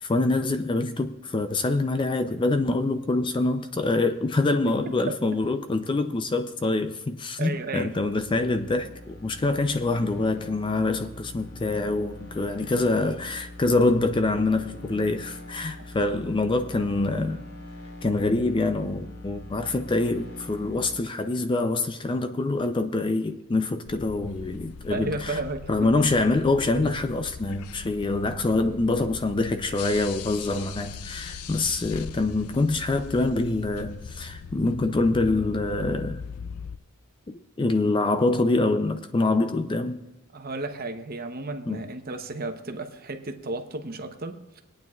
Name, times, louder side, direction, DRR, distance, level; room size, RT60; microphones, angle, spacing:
voice 1, 0.0-17.4 18.0-25.4 25.7-36.2 37.3-40.0 41.7-41.8, left 2 dB, 20° left, 0.4 m, -25 dB
voice 2, 7.4-7.9 12.6-12.8 16.0-16.1 24.9-25.9 40.3-44.6, right 2 dB, 40° right, 0.8 m, -33 dB
sound 1, 7.6-21.0, left 1 dB, 45° left, 1.2 m, -43 dB
sound 2, 23.9-36.8, left 5 dB, 80° left, 0.5 m, -40 dB
25.0 x 9.0 x 2.4 m
head